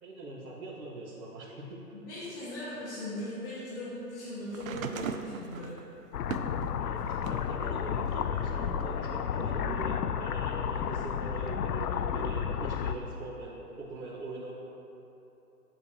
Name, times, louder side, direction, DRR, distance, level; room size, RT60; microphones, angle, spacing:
voice 1, 0.0-1.8 6.8-14.5, right 2 dB, 80° right, -7 dB, 1.8 m, -42 dB
voice 2, 1.9-5.8, left 1 dB, 35° left, -10 dB, 1.8 m, -39 dB
sound 1, 4.5-7.5 8.0-9.2 10.2-10.3, right 7 dB, 60° right, 0.6 m, -40 dB
sound 2, 6.1-12.9, left 8 dB, 75° left, 0.5 m, -32 dB
9.6 x 7.1 x 2.9 m, 3.0 s
hypercardioid pair, 150°, 48 cm